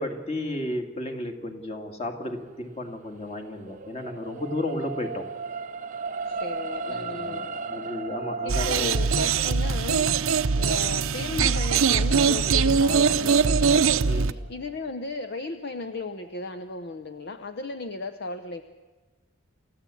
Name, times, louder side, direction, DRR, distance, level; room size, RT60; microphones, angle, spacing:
voice 1, 0.0-5.2 6.8-8.9 14.0-14.4, left 1 dB, 30° left, 5 dB, 2.3 m, -33 dB
sound 1, 3.2-15.7 16.3-16.4, right 3 dB, 35° right, 0.6 m, -37 dB
voice 2, 6.3-7.5 8.4-10.2 10.6-18.6, left 3 dB, 50° left, 9 dB, 0.8 m, -36 dB
sound 2, 8.5-14.3, right 5 dB, 75° right, 0.7 m, -22 dB
29.0 x 14.5 x 8.4 m, 1.3 s
head